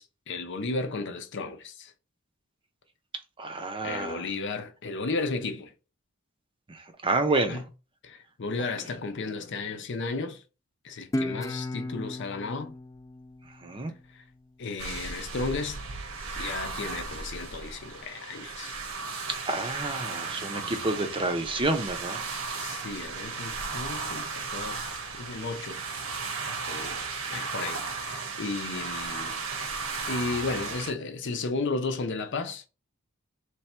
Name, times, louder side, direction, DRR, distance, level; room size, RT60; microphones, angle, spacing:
voice 1, 0.0-1.9 3.8-5.7 7.4-7.6 8.0-10.4 10.8-12.7 14.6-15.8 16.4-18.7 22.6-24.9 25.1-25.8 26.7-29.4 30.1-32.7, left 3 dB, 60° left, 0.7 m, -34 dB
voice 2, 3.4-4.2 7.0-7.6 13.6-13.9 19.5-22.3, right 2 dB, 25° right, 0.6 m, -29 dB
Guitar, 11.1-14.3, left 1 dB, 15° left, 0.3 m, -35 dB
sound 1, 14.8-30.9, right 4 dB, 85° right, 1.1 m, -35 dB
3.4 x 3.3 x 4.3 m
head